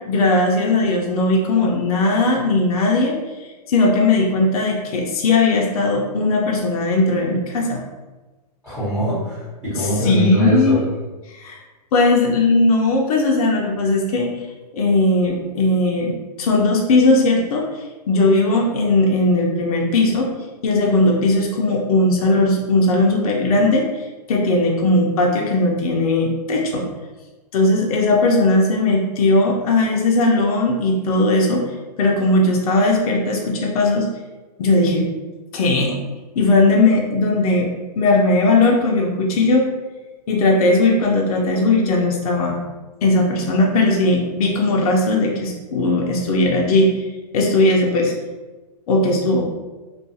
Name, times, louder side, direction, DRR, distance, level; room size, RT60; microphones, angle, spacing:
voice 1, 0.1-3.2 3.7-7.8 9.8-10.8 11.3-11.6 11.9-14.3 14.7-17.7 18.1-20.3 20.6-26.9 27.5-31.6 32.0-34.1 34.6-35.1 35.5-36.0 36.4-37.7 38.0-39.6 40.3-42.6 43.0-47.1 47.3-48.1 48.9-49.4, left 2 dB, 65° left, -1 dB, 0.5 m, -18 dB
voice 2, 8.6-10.8, equal, ahead, -13 dB, 0.9 m, -22 dB
2.3 x 2.3 x 2.7 m, 1.2 s
hypercardioid pair, 155°, 21 cm